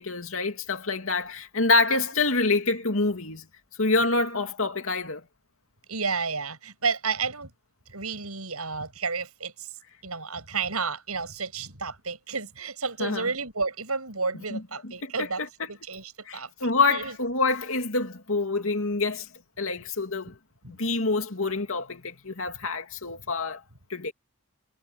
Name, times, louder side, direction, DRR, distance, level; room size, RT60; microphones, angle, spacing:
voice 1, 0.0-3.4 3.8-5.2 13.0-13.3 14.3-15.7 16.3-19.3 19.6-20.4 20.7-23.6 23.9-24.1, left 3 dB, 65° left, 2.7 m, -27 dB
voice 2, 5.9-7.5 7.9-9.7 10.0-15.4 15.7-17.2 20.6-20.7 23.2-23.3, right 4 dB, 80° right, 7.6 m, -31 dB
head